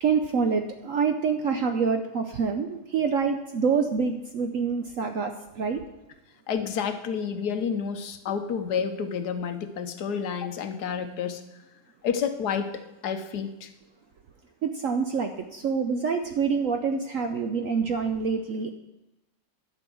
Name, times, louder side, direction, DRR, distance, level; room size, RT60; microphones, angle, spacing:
voice 1, 0.0-5.8 14.6-18.7, right 5 dB, 65° right, 6 dB, 0.8 m, -26 dB
voice 2, 6.5-11.4 12.0-13.7, left 7 dB, 65° left, 9 dB, 1.3 m, -30 dB
11.5 x 5.4 x 7.8 m, 0.99 s
omnidirectional pair, 2.0 m